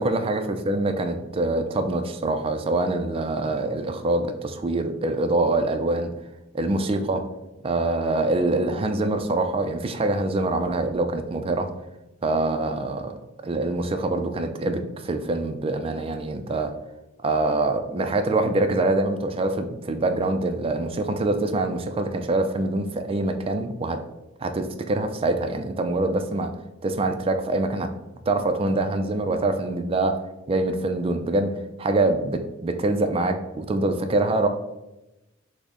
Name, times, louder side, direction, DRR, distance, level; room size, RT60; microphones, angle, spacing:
voice 1, 0.0-6.1 6.5-7.2 7.6-11.7 12.2-13.1 13.4-16.7 17.2-24.0 24.4-26.5 26.8-27.9 28.3-30.1 30.5-31.5 31.8-34.5, right 2 dB, 30° right, 7 dB, 0.3 m, -24 dB
6.2 x 2.1 x 3.6 m, 0.98 s
head